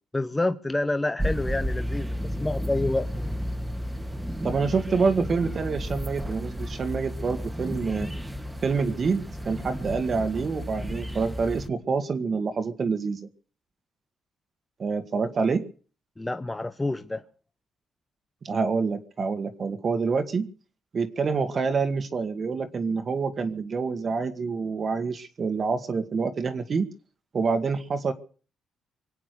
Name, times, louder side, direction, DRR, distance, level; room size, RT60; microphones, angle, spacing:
voice 1, 0.1-3.1 16.2-17.2, left 2 dB, 15° left, 0.9 m, -28 dB
sound 1, 1.2-11.7, equal, 10° right, 1.7 m, -32 dB
voice 2, 4.4-8.1 8.6-13.3 14.8-15.7 18.4-20.5 20.9-26.9 27.3-28.1, right 4 dB, 45° right, 1.7 m, -27 dB
24.5 x 8.7 x 6.6 m
cardioid pair, 90°, 0 cm